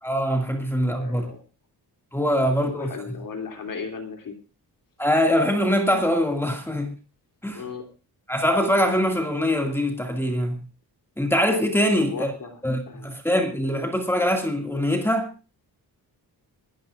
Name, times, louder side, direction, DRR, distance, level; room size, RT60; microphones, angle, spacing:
voice 1, 0.0-1.3 2.1-2.9 5.0-6.9 7.4-7.6 8.3-10.6 11.2-12.3 12.6-15.3, equal, 5° left, 2.2 m, -23 dB
voice 2, 0.9-1.4 2.5-4.4 7.5-7.9 12.0-13.1, left 5 dB, 60° left, 3.2 m, -36 dB
26.0 x 12.0 x 2.5 m
wide cardioid pair, 175°, 38 cm